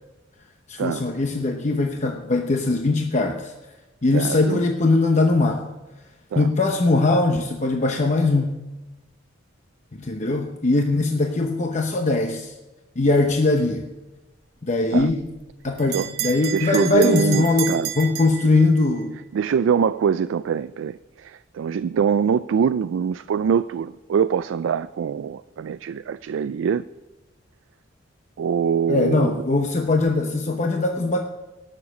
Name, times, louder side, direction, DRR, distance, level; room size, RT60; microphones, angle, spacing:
voice 1, 0.7-3.5 4.0-5.6 6.4-8.5 10.0-12.5 13.0-13.8 14.6-15.3 15.6-19.1 28.9-31.2, left 2 dB, 40° left, 3 dB, 0.8 m, -21 dB
voice 2, 4.1-4.6 6.3-6.5 14.9-15.1 15.9-16.1 16.5-17.9 19.3-26.8 28.4-29.4, right 7 dB, 90° right, 13 dB, 0.3 m, -23 dB
Bell, 15.1-19.0, right 12 dB, 55° right, 0.7 m, -32 dB
18.0 x 6.7 x 6.3 m, 1.1 s
head